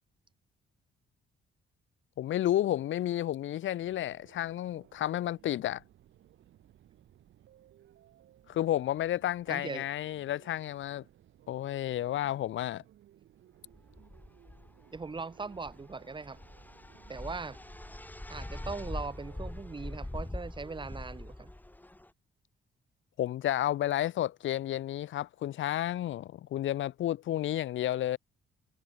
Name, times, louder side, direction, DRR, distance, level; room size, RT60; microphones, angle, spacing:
voice 1, 2.2-5.8 8.5-11.0 11.5-12.8 23.2-28.2, left 13 dB, 75° left, 1.7 m, -31 dB
sound 1, 3.8-20.1, right 12 dB, 75° right, 6.9 m, -61 dB
voice 2, 9.5-9.8 14.9-16.4 17.1-17.6 18.3-21.5, right 4 dB, 25° right, 1.9 m, -40 dB
sound 2, 13.7-22.1, left 1 dB, 10° left, 3.3 m, -43 dB
cardioid pair, 90°, 20 cm